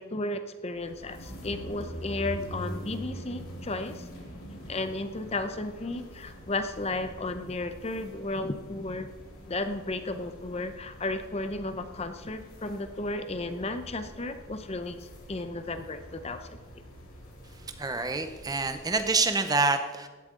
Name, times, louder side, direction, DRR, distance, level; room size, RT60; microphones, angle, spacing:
voice 1, 0.0-4.1 4.7-9.1 9.5-16.6, left 2 dB, 25° left, 9 dB, 0.6 m, -34 dB
sound 1, 0.7-19.3, equal, 85° left, 4.0 m, -44 dB
voice 2, 17.8-20.1, right 3 dB, 15° right, 9 dB, 0.6 m, -27 dB
16.0 x 11.0 x 3.8 m, 1.4 s
head